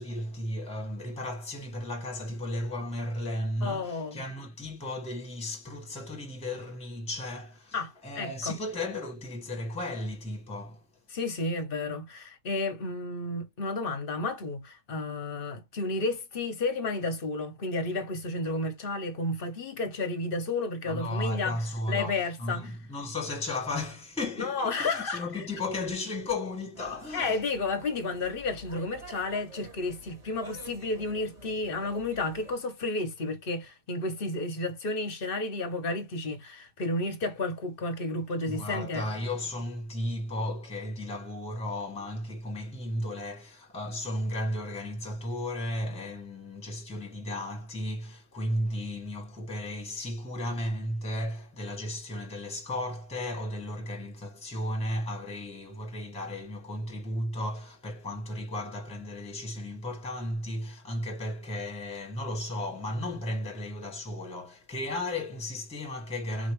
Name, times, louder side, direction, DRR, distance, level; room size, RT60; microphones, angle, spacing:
voice 1, 0.0-10.8 20.9-27.4 38.4-66.5, left 1 dB, 5° left, 1.3 m, -34 dB
voice 2, 3.6-4.2 7.7-8.6 11.1-21.6 21.9-22.7 24.4-25.4 27.1-39.0, left 3 dB, 40° left, 0.9 m, -32 dB
sound 1, 26.7-32.6, right 2 dB, 25° right, 1.7 m, -49 dB
4.4 x 3.2 x 3.1 m
omnidirectional pair, 1.7 m